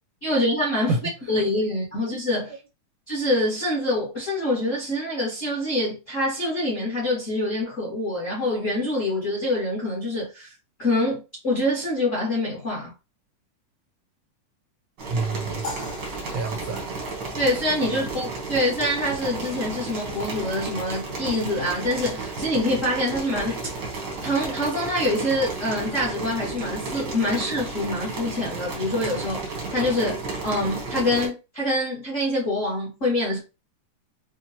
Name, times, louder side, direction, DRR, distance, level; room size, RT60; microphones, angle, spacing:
voice 1, 0.2-0.9 1.3-2.5 3.1-10.5 10.8-12.9 17.3-23.7 24.2-33.4, left 1 dB, 75° left, 0.7 m, -25 dB
voice 2, 0.9-1.3 15.1-15.7 16.3-16.9 17.8-18.1, right 3 dB, 85° right, 1.5 m, -29 dB
sound 1, 15.0-31.3, right 3 dB, 65° right, 1.0 m, -33 dB
sound 2, 15.6-18.0, left 2 dB, 55° left, 1.7 m, -40 dB
6.1 x 2.1 x 2.7 m
omnidirectional pair, 3.6 m